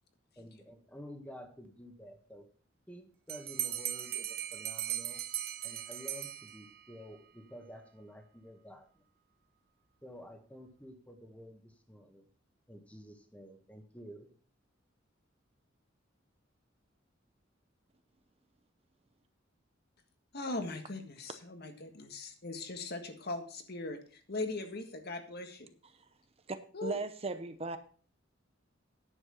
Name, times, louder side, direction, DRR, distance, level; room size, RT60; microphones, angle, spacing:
voice 1, 0.4-2.4 2.9-5.2 5.6-9.0 10.0-12.3 12.7-14.3, equal, 5° left, 1.5 m, -51 dB
Bell, 3.3-6.9, right 12 dB, 55° right, 1.1 m, -38 dB
voice 2, 20.3-25.7 26.7-27.0, left 2 dB, 55° left, 1.6 m, -40 dB
voice 3, 26.5-27.8, right 3 dB, 30° right, 0.8 m, -37 dB
10.0 x 7.3 x 5.6 m
head